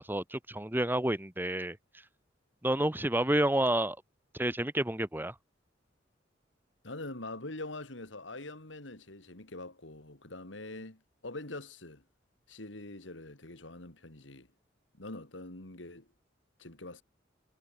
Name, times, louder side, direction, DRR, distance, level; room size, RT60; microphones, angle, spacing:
voice 1, 0.0-1.8 2.6-4.0 4.3-5.4, right 1 dB, 10° right, 1.8 m, -29 dB
voice 2, 6.8-12.0 12.5-14.5 14.9-16.1 16.6-17.0, left 2 dB, 80° left, 3.3 m, -44 dB
head